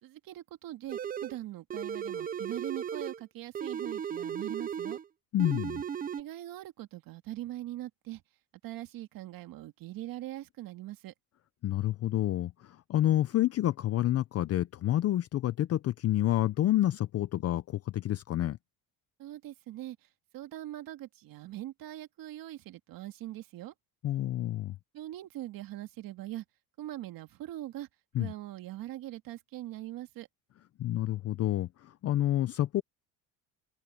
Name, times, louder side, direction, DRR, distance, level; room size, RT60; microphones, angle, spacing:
voice 1, 0.0-5.0 6.2-8.2 8.6-11.1 19.2-20.0 20.3-23.7 24.9-26.4 26.8-27.9 28.2-30.3, right 14 dB, 65° right, 2.0 m, -42 dB
sound 1, 0.9-1.4 1.7-3.2 3.5-5.1 5.4-6.2, right 8 dB, 25° right, 0.5 m, -36 dB
voice 2, 5.3-5.8 11.6-18.6 24.0-24.8 28.1-28.3 30.8-32.8, left 13 dB, 40° left, 0.5 m, -29 dB
open air
cardioid pair, 135°, 36 cm